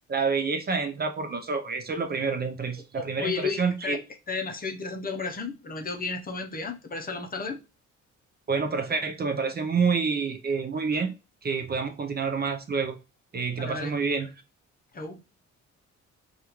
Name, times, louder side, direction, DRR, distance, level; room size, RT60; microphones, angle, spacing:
voice 1, 0.1-4.0 8.5-11.1 11.4-13.0 13.3-14.3, right 5 dB, 30° right, 0.6 m, -28 dB
voice 2, 2.9-4.0 4.3-7.6 13.6-13.9 14.9-15.2, left 4 dB, 30° left, 0.7 m, -33 dB
4.8 x 2.4 x 3.0 m
cardioid pair, 90°, 30 cm